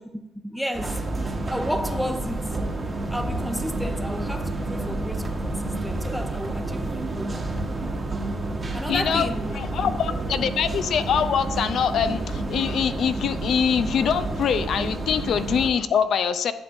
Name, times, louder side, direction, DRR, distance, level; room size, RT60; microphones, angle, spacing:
voice 1, 0.4-2.6 3.1-7.4 8.7-9.6 9.8-10.0, equal, ahead, 0.7 m, -32 dB
sound 1, 0.7-15.7, right 2 dB, 30° right, 1.1 m, -30 dB
sound 2, 5.9-13.5, right 7 dB, 80° right, 0.6 m, -45 dB
voice 2, 8.9-9.3 9.5-16.5, left 7 dB, 65° left, 0.5 m, -24 dB
10.5 x 7.1 x 2.6 m
cardioid pair, 90°, 0 cm